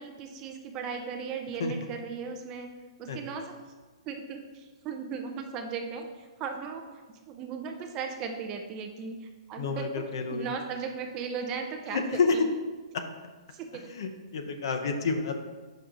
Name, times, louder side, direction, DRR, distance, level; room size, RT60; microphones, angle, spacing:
voice 1, 0.0-2.7 3.0-3.5 4.1-9.9 10.3-12.0 13.5-13.8, right 5 dB, 15° right, 3 dB, 0.4 m, -37 dB
voice 2, 9.6-10.5 11.9-12.5 13.7-15.4, left 4 dB, 50° left, 6 dB, 0.7 m, -29 dB
5.8 x 5.3 x 3.7 m, 1.3 s
hypercardioid pair, 175°, 3 cm